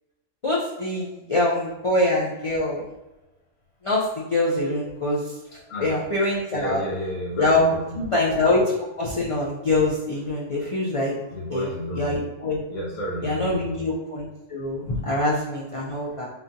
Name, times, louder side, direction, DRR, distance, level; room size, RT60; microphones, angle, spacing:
voice 1, 0.4-2.8 3.8-5.4 5.8-6.8 7.4-11.2 11.5-12.6 13.2-16.3, left 2 dB, 40° left, -5 dB, 0.5 m, -24 dB
voice 2, 6.5-7.8 11.3-12.1 12.7-13.8, equal, 80° left, -6 dB, 1.6 m, -31 dB
3.9 x 3.6 x 2.7 m, 1.0 s
omnidirectional pair, 1.3 m